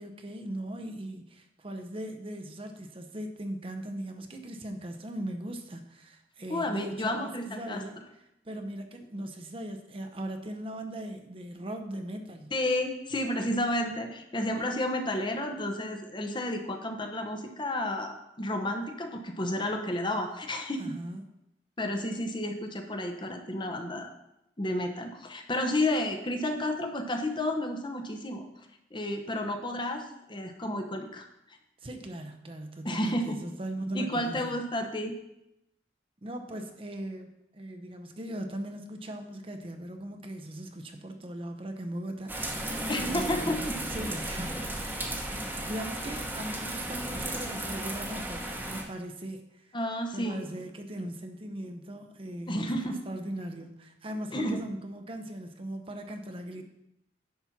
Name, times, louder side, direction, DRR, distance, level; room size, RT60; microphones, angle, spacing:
voice 1, 0.0-8.0 8.4-12.5 20.8-21.2 31.8-34.6 36.2-42.3 43.1-44.6 45.1-49.8 50.1-52.7 53.1-56.6, right 1 dB, 30° right, 5 dB, 0.8 m, -39 dB
voice 2, 6.5-7.8 12.5-20.9 21.8-24.1 24.6-28.5 28.9-31.3 32.8-33.4 33.9-35.1 42.9-43.7 49.7-50.4 52.5-53.0 54.3-54.6, left 1 dB, 25° left, 4 dB, 0.9 m, -31 dB
sound 1, 42.3-48.8, right 1 dB, 10° right, 1.1 m, -35 dB
10.5 x 4.3 x 5.9 m, 0.84 s
head